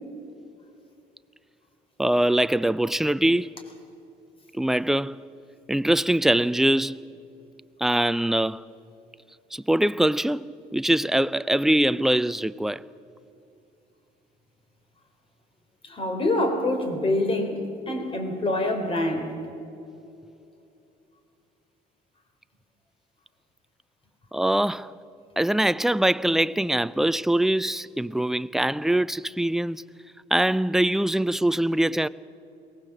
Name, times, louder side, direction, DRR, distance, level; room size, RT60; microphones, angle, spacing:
voice 1, 2.0-3.6 4.5-5.2 5.7-7.0 7.8-8.6 9.5-10.5 10.7-12.8 24.3-24.9 25.4-29.8 30.3-32.1, right 1 dB, ahead, 0.4 m, -23 dB
voice 2, 15.8-19.3, left 1 dB, 30° left, 3.8 m, -26 dB
22.5 x 18.5 x 7.3 m
cardioid pair, 110°, 17 cm